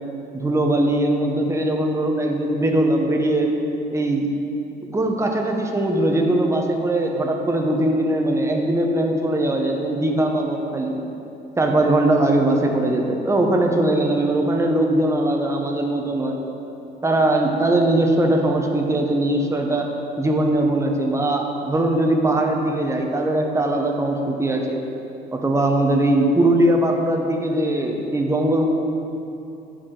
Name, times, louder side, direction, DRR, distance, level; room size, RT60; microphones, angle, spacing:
voice 1, 0.3-3.5 3.9-4.3 4.9-11.0 11.6-16.4 17.0-19.9 20.2-24.8 25.3-28.7, right 1 dB, 15° right, 2 dB, 1.0 m, -20 dB
14.5 x 4.8 x 3.9 m, 2.9 s
cardioid pair, 110°, 17 cm